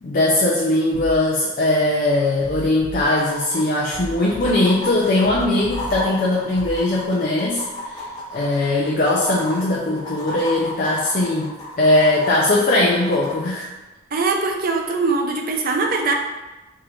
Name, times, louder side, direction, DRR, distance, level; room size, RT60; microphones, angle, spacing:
voice 1, 0.0-7.9 8.3-13.7, left 2 dB, 45° left, -5 dB, 0.5 m, -20 dB
sound 1, 0.9-1.1 1.7-1.8 2.3-3.2 3.8-4.9 5.2-6.2 6.5-6.8, equal, 10° right, 0.9 m, -34 dB
sound 2, 3.1-13.4 15.0-15.1, left 2 dB, 20° left, 0.9 m, -34 dB
voice 2, 14.1-16.1, right 3 dB, 45° right, 3 dB, 0.5 m, -21 dB
4.6 x 2.5 x 3.1 m, 1.1 s
head